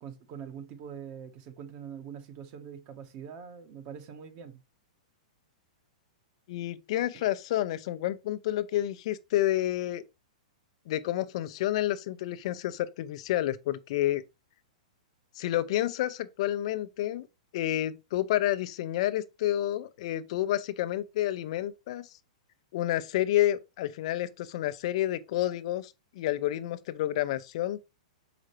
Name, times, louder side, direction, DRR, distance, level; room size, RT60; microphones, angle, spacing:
voice 1, 0.0-4.6 7.1-7.2, right 7 dB, 45° right, 1.3 m, -44 dB
voice 2, 6.5-10.0 10.9-14.2 15.4-17.3 17.5-22.1 22.7-27.8, left 13 dB, 55° left, 0.7 m, -29 dB
6.3 x 5.0 x 3.3 m
hypercardioid pair, 120°, 4 cm